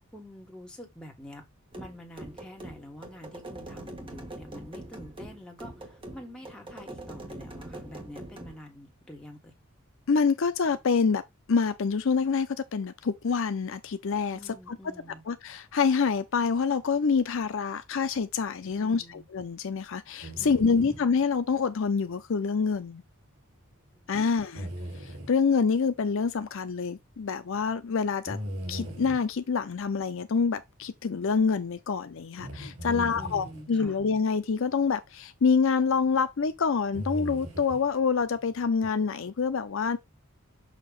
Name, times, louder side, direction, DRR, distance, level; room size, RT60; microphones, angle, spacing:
voice 1, 0.1-1.4 1.7-9.5 14.3-15.2 18.8-19.2 20.4-21.1 23.9-24.2 32.9-34.0, equal, 5° left, 1.7 m, -46 dB
sound 1, 1.7-8.6, right 1 dB, 25° right, 1.2 m, -43 dB
voice 2, 10.1-11.2 11.5-14.4 14.7-14.8 15.3-23.0 24.1-24.7 25.0-28.4 28.7-40.0, left 5 dB, 60° left, 0.5 m, -26 dB
sound 2, 20.2-21.0 24.5-25.3 28.3-29.3 32.4-33.6 35.6-35.7 36.9-37.9 38.8-38.9, equal, 75° right, 3.0 m, -38 dB
6.6 x 2.8 x 5.2 m
head